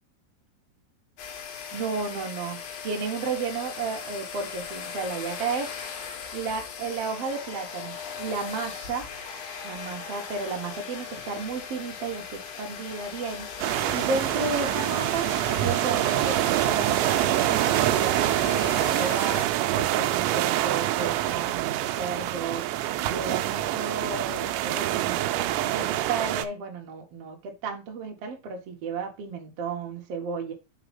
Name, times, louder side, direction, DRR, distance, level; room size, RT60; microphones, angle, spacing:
sound 1, 1.2-19.5, left 6 dB, 70° left, 2.4 m, -38 dB
voice 1, 1.7-5.7 6.3-9.1 9.6-13.5 13.9-15.3 15.6-19.4 19.7-22.7 23.0-30.5, right 4 dB, 65° right, 1.5 m, -33 dB
sound 2, 13.6-26.5, right 13 dB, 85° right, 2.8 m, -26 dB
5.8 x 4.2 x 5.3 m
omnidirectional pair, 5.1 m